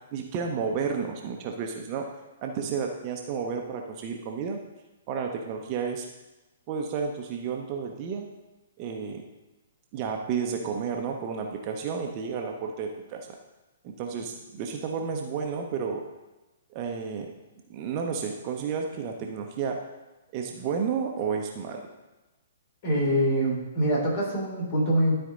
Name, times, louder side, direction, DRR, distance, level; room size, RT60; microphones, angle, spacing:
voice 1, 0.1-2.0 2.4-4.6 5.1-6.1 6.7-8.3 8.8-9.2 9.9-13.4 13.8-16.0 16.7-17.3 17.7-19.8 20.3-21.9, right 6 dB, 35° right, 2 dB, 0.9 m, -31 dB
voice 2, 22.8-25.2, equal, 40° left, -3 dB, 3.1 m, -24 dB
12.5 x 4.5 x 3.8 m, 1.1 s
figure-of-eight pair, 120°, 0 cm